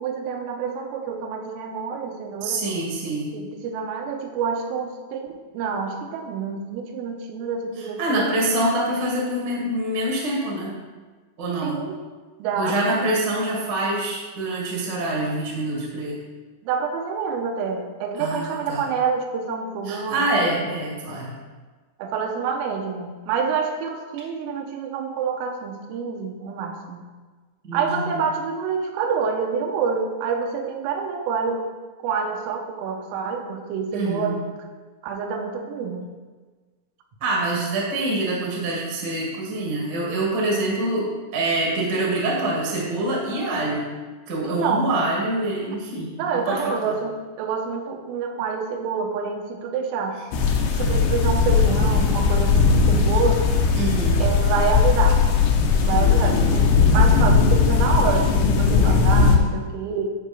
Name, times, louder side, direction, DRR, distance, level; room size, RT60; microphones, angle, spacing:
voice 1, 0.0-2.7 3.3-8.3 11.6-12.0 12.4-13.1 16.6-20.5 22.0-27.1 27.7-31.7 32.0-34.4 35.0-36.1 44.4-44.9 46.2-50.2 50.8-53.8 54.2-55.2 55.8-60.2, right 5 dB, 85° right, 3 dB, 3.2 m, -27 dB
voice 2, 2.4-3.3 7.8-10.7 11.4-11.8 12.5-16.2 18.2-18.8 19.8-21.3 27.6-28.2 33.9-34.4 37.2-43.9 44.3-46.9 53.7-54.2 55.9-56.6, right 1 dB, 70° right, -4 dB, 1.0 m, -25 dB
sound 1, 50.3-59.4, left 5 dB, 80° left, 3.5 m, -18 dB
13.5 x 4.9 x 3.5 m, 1.3 s
omnidirectional pair, 5.8 m